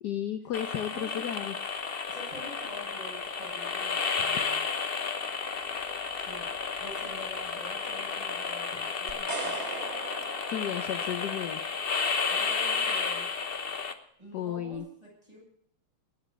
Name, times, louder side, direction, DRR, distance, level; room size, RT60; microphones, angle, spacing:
voice 1, 0.0-1.5 10.5-11.6 14.3-14.8, left 10 dB, 65° left, 9 dB, 1.2 m, -33 dB
sound 1, 0.5-13.9, left 5 dB, 40° left, 0.8 m, -32 dB
voice 2, 0.9-1.3 2.1-4.6 6.2-6.5 6.8-9.5 12.3-13.3 14.2-15.4, right 1 dB, 15° right, -3 dB, 7.8 m, -46 dB
sound 2, 9.1-11.4, right 4 dB, 35° right, 1.5 m, -39 dB
19.5 x 7.3 x 7.9 m, 0.68 s
omnidirectional pair, 2.3 m